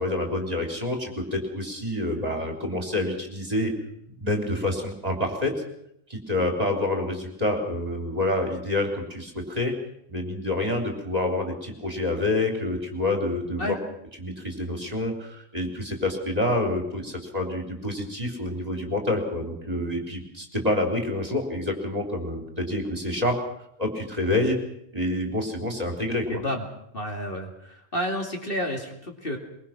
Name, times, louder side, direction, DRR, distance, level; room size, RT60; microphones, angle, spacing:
voice 1, 0.0-3.7 4.2-5.5 6.1-9.7 10.1-13.8 14.2-23.4 23.8-24.6 24.9-26.4, left 1 dB, 30° right, 2 dB, 3.9 m, -27 dB
voice 2, 26.3-26.6 26.9-29.4, equal, 45° left, 2 dB, 2.9 m, -30 dB
23.0 x 22.5 x 6.1 m, 0.74 s
omnidirectional pair, 1.3 m